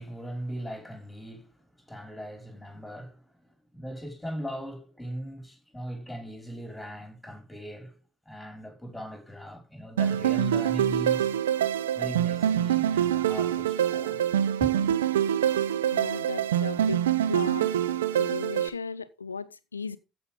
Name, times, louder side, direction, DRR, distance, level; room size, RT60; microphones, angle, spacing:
voice 1, 0.0-11.4 11.9-14.2 14.6-15.0, equal, 5° left, 5.5 m, -39 dB
sound 1, 10.0-18.7, right 10 dB, 80° right, 0.7 m, -25 dB
voice 2, 15.9-17.7 18.2-20.0, left 5 dB, 85° left, 0.6 m, -36 dB
14.5 x 6.1 x 3.6 m
figure-of-eight pair, 50°, 0 cm